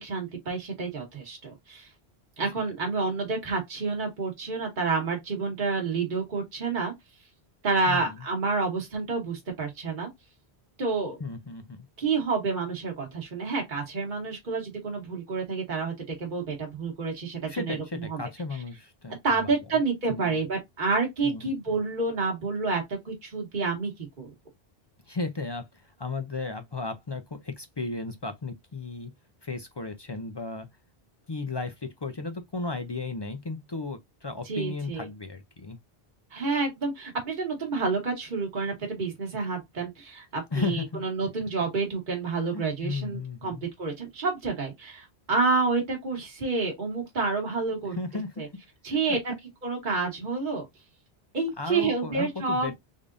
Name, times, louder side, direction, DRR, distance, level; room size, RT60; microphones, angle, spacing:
voice 1, 0.0-1.9 2.4-6.9 7.6-10.1 10.8-11.2 12.0-17.8 18.1-18.2 19.2-23.9 24.2-24.3 34.4-35.1 36.3-48.0 48.4-48.5 48.8-49.3 49.6-50.7 51.3-52.8, right 4 dB, 50° right, 1.3 m, -29 dB
voice 2, 7.9-8.2 11.2-11.8 17.5-19.5 20.1-20.4 21.2-21.8 25.1-29.1 29.4-30.7 31.3-35.8 40.5-41.0 42.5-43.6 48.0-48.5 48.9-49.2 51.6-52.8, left 3 dB, 40° left, 0.4 m, -35 dB
3.7 x 3.4 x 2.4 m
omnidirectional pair, 1.1 m